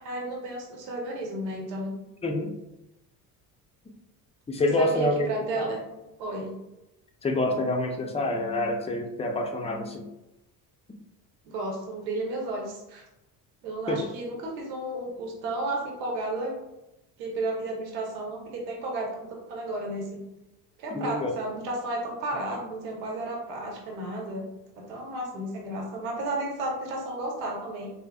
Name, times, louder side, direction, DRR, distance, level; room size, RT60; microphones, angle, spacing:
voice 1, 0.0-1.9 4.8-5.8 6.2-6.5 11.5-13.0 13.6-16.5 17.2-20.2 20.8-24.5 24.8-27.9, right 2 dB, 85° right, 0 dB, 1.0 m, -33 dB
voice 2, 2.2-2.5 4.5-5.3 5.6-5.7 7.2-10.1 13.9-14.1 20.9-21.3, left 1 dB, 15° left, 3 dB, 0.5 m, -27 dB
3.7 x 2.8 x 2.3 m, 0.93 s
hypercardioid pair, 70°, 50 cm